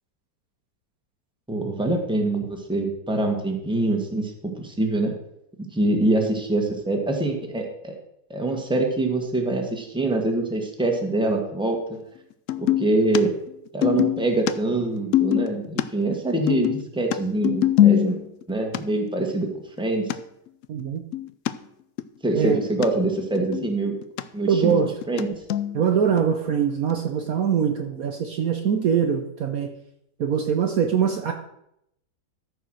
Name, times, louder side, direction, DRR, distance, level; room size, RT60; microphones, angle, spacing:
voice 1, 1.5-5.1 5.7-8.0 8.3-11.8 12.6-13.4 13.7-18.2 18.5-20.1 22.2-23.9 24.3-24.8 25.1-25.4, right 2 dB, 5° right, 2 dB, 1.4 m, -24 dB
sound 1, 12.5-12.9 13.1-13.2 13.5-15.8 16.1-18.4 18.7-18.8 19.3-19.4 19.8-19.9 20.1-20.2 20.5-21.5 22.0-22.1 22.3-22.9 23.2-24.2 24.5-25.2 25.5-25.8 26.2-26.3 26.9-27.0, left 12 dB, 75° left, 0.7 m, -22 dB
voice 2, 20.7-21.0 22.3-22.6 24.5-24.9 25.7-29.7 30.2-31.3, right 7 dB, 60° right, 5 dB, 1.1 m, -23 dB
13.5 x 4.7 x 6.2 m, 0.79 s
omnidirectional pair, 1.9 m